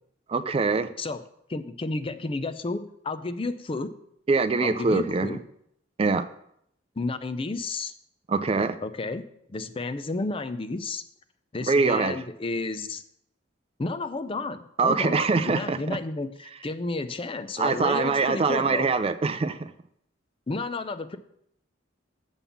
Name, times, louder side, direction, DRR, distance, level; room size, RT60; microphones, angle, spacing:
voice 1, 0.3-0.9 4.3-5.3 6.0-6.3 8.3-8.8 11.7-12.2 14.8-15.8 17.6-19.7, right 4 dB, 30° right, 11 dB, 0.4 m, -23 dB
voice 2, 1.5-3.9 4.6-5.4 7.0-7.9 8.8-11.0 11.5-13.0 13.8-18.9 20.5-21.2, left 3 dB, 30° left, 12 dB, 0.5 m, -32 dB
7.1 x 5.5 x 7.1 m, 0.73 s
head